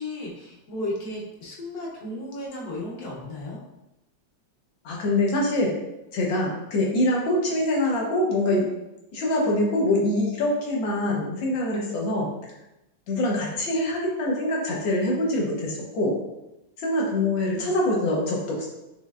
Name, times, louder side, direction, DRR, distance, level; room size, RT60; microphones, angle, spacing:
voice 1, 0.0-3.6 17.2-17.7, left 1 dB, 60° left, -3 dB, 1.3 m, -35 dB
voice 2, 4.9-5.7 6.1-8.7 9.1-12.3 13.1-16.2 16.8-18.7, left 1 dB, 80° left, -2 dB, 1.7 m, -24 dB
5.3 x 3.1 x 2.4 m, 0.95 s
omnidirectional pair, 2.0 m